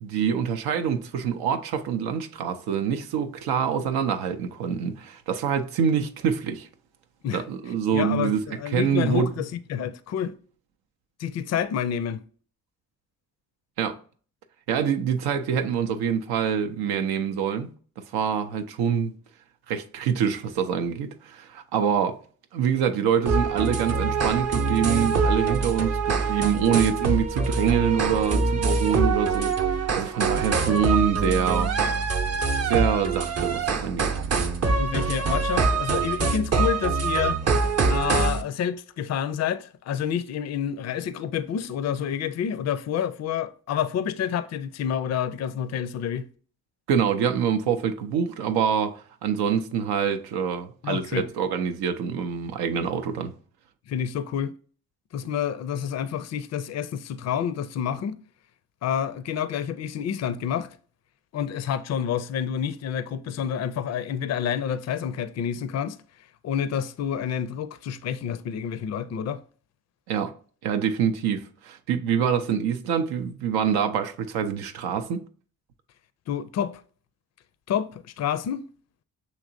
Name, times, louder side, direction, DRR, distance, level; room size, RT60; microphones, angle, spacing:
voice 1, 0.0-6.7 7.3-9.3 13.8-14.0 14.7-17.7 18.1-19.1 19.7-22.2 22.5-31.7 32.6-34.1 35.0-35.1 46.9-53.3 70.1-70.3 70.6-75.3, right 7 dB, 75° right, 0.5 m, -25 dB
voice 2, 7.9-8.3 8.6-10.3 11.2-12.2 34.8-37.4 37.9-46.3 50.8-51.3 53.9-54.5 55.1-58.1 58.8-60.7 61.3-66.0 66.4-69.4 76.3-76.8 77.7-78.6, left 8 dB, 45° left, 0.4 m, -28 dB
sound 1, 23.3-38.4, right 4 dB, 40° right, 0.7 m, -24 dB
6.4 x 2.9 x 2.5 m
hypercardioid pair, 45°, 38 cm